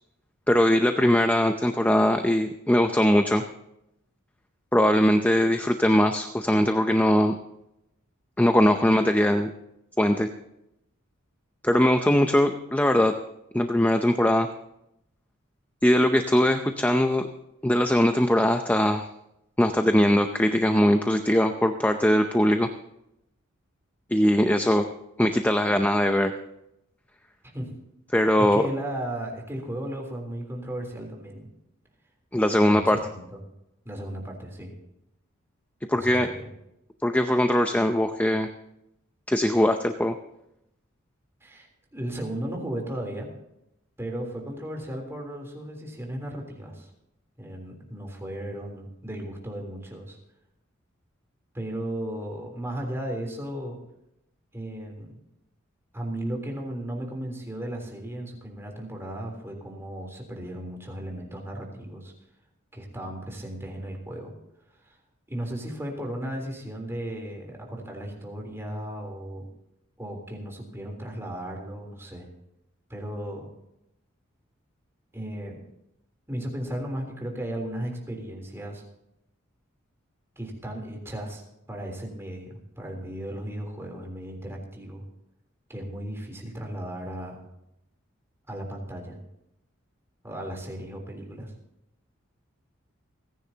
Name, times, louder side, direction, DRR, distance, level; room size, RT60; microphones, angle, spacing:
voice 1, 0.5-3.4 4.7-7.3 8.4-9.5 10.0-10.3 11.6-13.1 13.5-14.5 15.8-17.3 17.6-19.1 19.6-22.7 24.1-24.9 25.2-26.3 28.1-28.7 32.3-33.0 35.9-36.3 37.0-38.5 39.3-40.1, left 1 dB, 10° left, 6 dB, 0.6 m, -21 dB
voice 2, 28.4-31.5 32.6-33.4 33.9-34.7 35.9-36.5 41.4-43.3 44.0-46.9 47.4-50.2 51.5-53.8 54.5-55.1 55.9-62.1 62.7-64.3 64.9-65.0 65.3-69.5 70.0-72.3 72.9-73.5 75.1-75.6 76.3-78.8 80.4-81.4 81.7-85.0 85.7-87.4 88.5-89.2 90.2-91.5, right 1 dB, 10° right, 1 dB, 3.5 m, -35 dB
29.5 x 10.5 x 2.9 m, 0.84 s
head